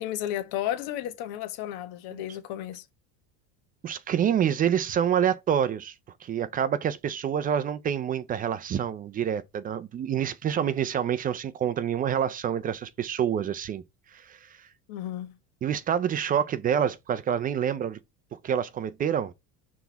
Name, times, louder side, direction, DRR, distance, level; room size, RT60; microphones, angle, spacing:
voice 1, 0.0-2.9 14.9-15.4, left 12 dB, 70° left, 1.3 m, -33 dB
voice 2, 3.8-5.9 6.2-13.8 14.1-14.7 15.6-18.0 18.4-19.3, right 9 dB, 25° right, 0.3 m, -27 dB
6.0 x 3.5 x 4.6 m
cardioid pair, 145°, 38 cm